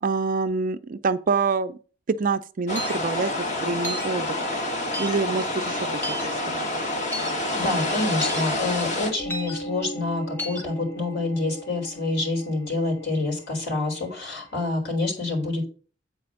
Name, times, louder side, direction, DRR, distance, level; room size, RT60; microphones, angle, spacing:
voice 1, 0.0-1.8 2.1-3.3 3.6-4.5 5.0-6.7, right 4 dB, 45° right, 0.4 m, -26 dB
sound 1, 2.7-9.1, left 1 dB, 40° left, 1.4 m, -28 dB
sound 2, 2.8-3.0 3.8-4.1 4.9-5.2 6.0-6.3 7.1-7.3 8.2-8.4 9.3-9.5 10.4-10.6, equal, 10° left, 1.4 m, -32 dB
voice 2, 7.6-15.7, left 2 dB, 65° left, 3.8 m, -27 dB
sound 3, 7.8-14.7, right 1 dB, 90° left, 3.8 m, -40 dB
8.4 x 4.2 x 5.8 m
head